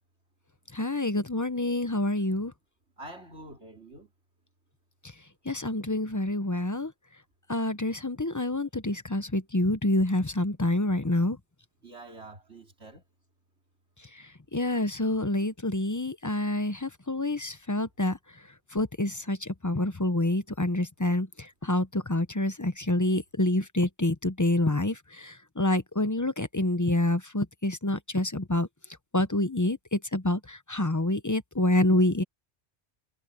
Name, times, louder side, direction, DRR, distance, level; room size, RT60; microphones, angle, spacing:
voice 1, 0.7-2.5 5.5-6.9 7.5-11.4 14.5-18.2 18.7-28.7 29.1-32.2, left 1 dB, 20° left, 0.8 m, -27 dB
voice 2, 3.0-4.1 11.8-13.0, right 2 dB, 75° right, 4.1 m, -46 dB
omnidirectional pair, 1.1 m